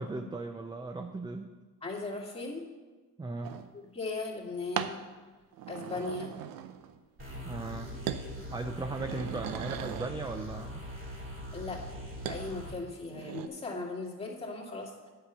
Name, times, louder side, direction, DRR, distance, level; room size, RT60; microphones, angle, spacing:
voice 1, 0.0-1.5 3.2-3.5 7.4-8.0 8.5-10.8, right 3 dB, 15° right, 6 dB, 0.5 m, -37 dB
voice 2, 1.8-2.7 3.7-5.0 5.7-6.3 11.5-11.8 12.3-15.1, left 3 dB, 20° left, -4 dB, 2.2 m, -38 dB
sound 1, 3.4-3.7 4.8-5.0 5.5-7.0 7.3-7.7 8.1-8.3 8.7-10.2 12.3-12.4 12.9-13.5, right 10 dB, 85° right, 0.7 m, -38 dB
sound 2, 7.2-12.8, equal, 35° right, 2.7 m, -42 dB
8.5 x 5.8 x 6.9 m, 1.3 s
cardioid pair, 105°, 33 cm